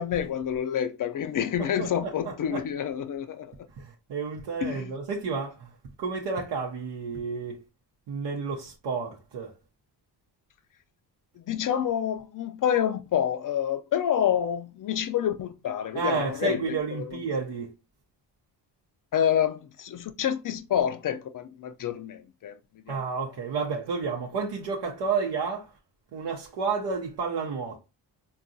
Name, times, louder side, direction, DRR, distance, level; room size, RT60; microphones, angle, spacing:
voice 1, 0.0-3.5 4.6-4.9 11.4-16.6 17.0-17.2 19.1-22.6 22.9-23.2, left 9 dB, 50° left, 0.5 m, -28 dB
voice 2, 1.6-2.6 3.8-5.7 6.0-7.6 8.1-9.5 15.9-17.7 22.9-25.7 26.1-27.8, right 5 dB, 85° right, 0.7 m, -31 dB
3.7 x 2.3 x 2.6 m
cardioid pair, 75°, 43 cm